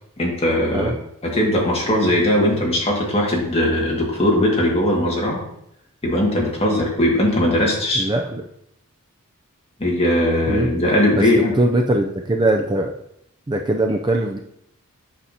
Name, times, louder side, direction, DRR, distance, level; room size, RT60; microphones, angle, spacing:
voice 1, 0.2-1.0 1.2-5.4 6.0-8.1 9.8-11.6, left 1 dB, 25° left, -2 dB, 1.8 m, -19 dB
voice 2, 8.0-8.4 10.5-10.7 11.1-13.0 13.5-14.4, right 2 dB, 20° right, 3 dB, 0.4 m, -21 dB
8.3 x 6.7 x 2.8 m, 0.76 s
head